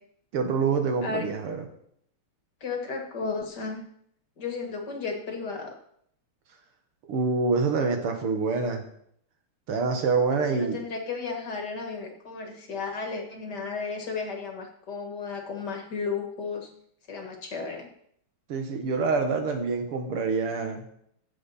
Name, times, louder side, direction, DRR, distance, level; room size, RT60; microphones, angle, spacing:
voice 1, 0.3-1.6 7.1-8.8 9.7-10.8 18.5-20.8, right 4 dB, 85° right, 5 dB, 2.4 m, -26 dB
voice 2, 1.0-1.3 2.6-3.8 4.4-5.8 10.3-16.7 17.1-17.9, left 4 dB, 50° left, 3 dB, 2.2 m, -34 dB
15.0 x 7.7 x 4.2 m, 0.69 s
omnidirectional pair, 2.4 m